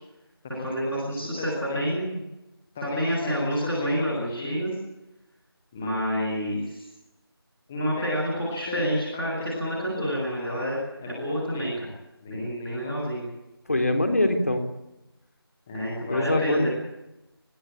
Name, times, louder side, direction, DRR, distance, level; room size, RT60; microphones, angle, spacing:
voice 1, 0.4-2.2 2.7-4.7 5.7-6.8 7.7-10.7 11.0-11.9 12.2-13.2 15.7-16.6, equal, ahead, -9 dB, 0.8 m, -28 dB
voice 2, 13.7-14.6 16.1-16.7, left 1 dB, 35° left, 6 dB, 3.7 m, -23 dB
29.0 x 19.5 x 8.6 m, 0.96 s
figure-of-eight pair, 170°, 13 cm